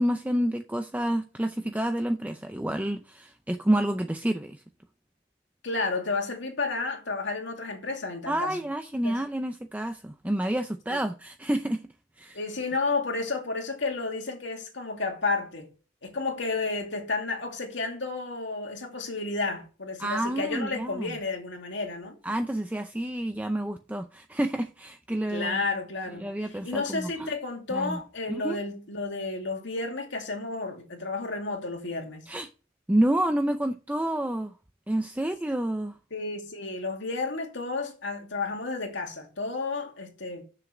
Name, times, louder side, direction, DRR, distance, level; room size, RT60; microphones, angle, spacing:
voice 1, 0.0-4.6 8.3-11.8 12.2-12.4 20.0-21.1 22.2-25.6 26.2-27.3 27.7-28.0 28.3-28.6 32.3-32.5 32.9-34.5 34.9-36.0, right 1 dB, 10° right, 0.5 m, -29 dB
voice 2, 5.6-8.6 9.0-9.2 12.3-15.7 16.0-22.2 25.3-32.2 36.1-40.4, left 3 dB, 65° left, 2.5 m, -31 dB
7.5 x 6.6 x 6.0 m
head